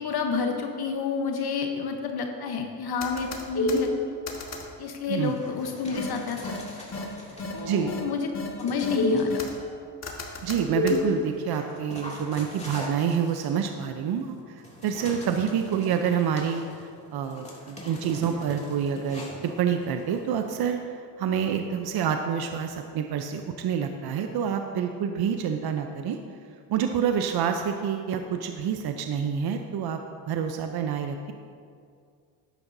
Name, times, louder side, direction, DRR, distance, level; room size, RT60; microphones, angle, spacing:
voice 1, 0.0-3.9 4.8-6.9 7.5-8.3 8.6-9.4, left 5 dB, 55° left, 4 dB, 1.1 m, -29 dB
sound 1, 3.0-3.8 4.3-4.6 6.0-6.1 6.4-6.6 6.9-7.0 7.4-7.5 7.9-8.0 8.3-8.5 8.8-9.5 10.0-11.0, left 2 dB, 35° left, 1.7 m, -27 dB
Dog, 5.1-8.0 8.6-9.6 10.2-20.6, equal, 15° left, 2.5 m, -43 dB
voice 2, 7.6-8.0 10.4-19.3 19.6-26.2 26.7-30.0 30.3-31.3, right 7 dB, 55° right, 6 dB, 0.7 m, -28 dB
11.5 x 10.0 x 2.7 m, 2.2 s
supercardioid pair, 80°, 46 cm